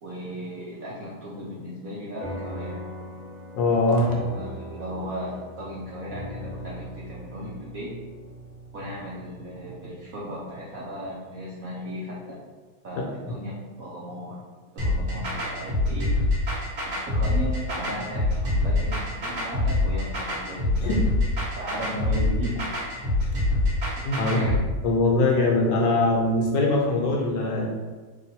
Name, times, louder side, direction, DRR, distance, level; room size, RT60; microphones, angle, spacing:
voice 1, 0.0-2.8 4.1-7.9 8.7-12.4 12.8-14.4 14.7-16.3 16.8-20.9 21.5-22.6 24.3-24.6, equal, 70° right, -6 dB, 0.8 m, -36 dB
sound 1, 2.2-11.0, equal, 90° right, 1.8 m, -40 dB
voice 2, 3.5-4.1 20.8-21.0 24.0-24.5 24.8-27.7, left 2 dB, 70° left, -2 dB, 1.3 m, -22 dB
sound 2, 14.8-24.6, left 2 dB, 50° right, 1.8 m, -25 dB
3.7 x 2.6 x 4.2 m, 1.4 s
omnidirectional pair, 2.3 m